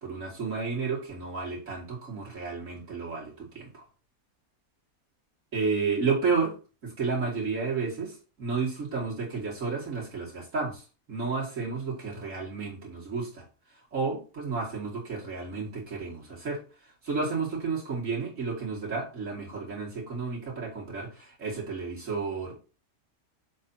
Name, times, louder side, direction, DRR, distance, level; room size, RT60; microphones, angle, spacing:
voice 1, 0.0-3.8 5.5-6.5 6.8-10.8 11.1-13.4 13.9-16.6 17.0-22.5, right 4 dB, 55° right, -3 dB, 3.0 m, -31 dB
7.4 x 3.0 x 5.7 m, 0.34 s
omnidirectional pair, 1.6 m